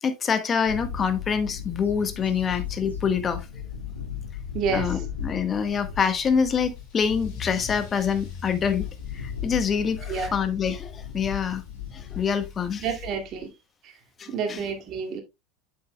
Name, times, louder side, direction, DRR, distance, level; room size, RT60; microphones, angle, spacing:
voice 1, 0.0-3.4 4.7-8.8 9.1-11.6 11.9-12.9 14.2-14.6, left 6 dB, 30° left, 1.3 m, -26 dB
Bird / Wind, 0.7-13.4, left 8 dB, 85° left, 2.2 m, -37 dB
voice 2, 4.5-5.0 10.1-10.3 12.8-13.5 13.8-13.9 14.3-15.2, right 5 dB, 45° right, 2.2 m, -29 dB
Car / Engine starting / Accelerating revving vroom, 6.2-13.4, left 6 dB, 50° left, 5.0 m, -43 dB
8.4 x 7.8 x 2.2 m
figure-of-eight pair, 80°, 0 cm